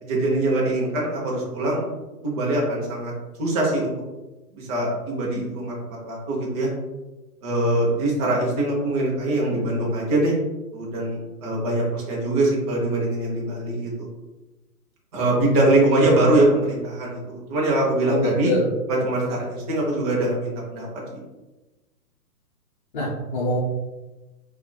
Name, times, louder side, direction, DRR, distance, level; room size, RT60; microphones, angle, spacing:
voice 1, 0.0-1.8 2.2-3.1 3.4-3.9 4.5-5.7 6.0-6.7 7.4-10.3 10.7-14.1 15.1-18.5 18.9-20.9, right 1 dB, 25° right, -3 dB, 0.6 m, -23 dB
voice 2, 18.1-18.7 22.9-23.6, left 1 dB, 30° left, -9 dB, 0.7 m, -24 dB
4.4 x 2.3 x 2.2 m, 1.1 s
hypercardioid pair, 145°, 48 cm